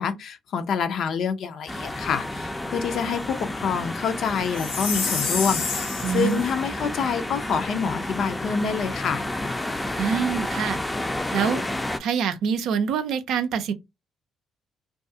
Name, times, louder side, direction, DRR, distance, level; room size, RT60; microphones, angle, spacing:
voice 1, 0.0-9.2, left 6 dB, 65° left, 0.5 m, -27 dB
sound 1, 1.7-12.0, left 1 dB, 15° left, 0.4 m, -31 dB
Chime, 4.5-6.5, left 5 dB, 90° left, 1.1 m, -29 dB
voice 2, 6.0-6.4 10.0-10.8 11.3-11.6 12.0-13.7, right 7 dB, 75° right, 0.4 m, -25 dB
2.4 x 2.3 x 2.6 m
supercardioid pair, 70°, 0 cm